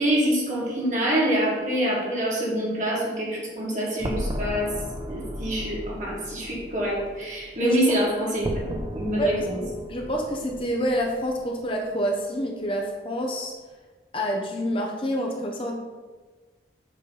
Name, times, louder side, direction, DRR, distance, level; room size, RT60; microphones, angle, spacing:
voice 1, 0.0-4.7 5.1-9.6, equal, 40° right, -5 dB, 1.9 m, -26 dB
sound 1, 4.0-12.0, equal, 25° right, 0.5 m, -35 dB
voice 2, 9.9-13.5 14.1-15.7, equal, 30° left, 0 dB, 0.7 m, -27 dB
6.8 x 3.2 x 5.5 m, 1.3 s
head